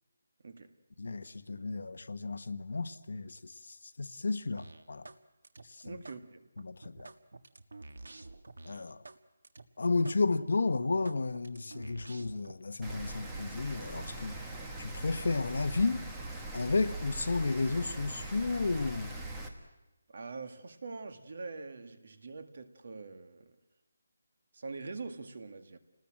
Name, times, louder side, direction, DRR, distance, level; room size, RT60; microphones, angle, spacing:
voice 1, 0.4-0.7 5.8-6.5 20.1-23.6 24.5-25.8, right 4 dB, 45° right, 1.9 m, -44 dB
voice 2, 1.0-5.1 5.6-6.0 6.6-7.1 8.6-9.0 9.8-14.5 14.8-16.1 16.5-19.2, left 3 dB, 60° left, 1.2 m, -33 dB
sound 1, 4.6-5.2 5.4-6.2 6.6-9.2 9.4-9.6 10.0-10.2 10.6-12.5, right 2 dB, 85° right, 1.6 m, -49 dB
Rain, 12.8-19.5, right 2 dB, 5° right, 1.3 m, -41 dB
29.5 x 19.5 x 7.6 m
hypercardioid pair, 180°, 0 cm